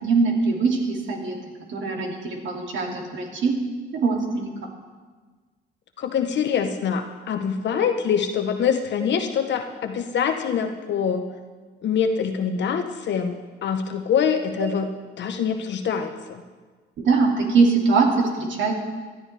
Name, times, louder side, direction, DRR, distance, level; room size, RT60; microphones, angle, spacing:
voice 1, 0.0-1.3 1.7-3.5 4.0-4.5 14.6-14.7 17.0-18.7, right 4 dB, 70° right, 0 dB, 2.5 m, -22 dB
voice 2, 6.0-11.3 11.8-13.3 13.6-16.4, left 7 dB, 65° left, 5 dB, 0.9 m, -24 dB
17.0 x 11.5 x 3.3 m, 1.4 s
cardioid pair, 90°, 20 cm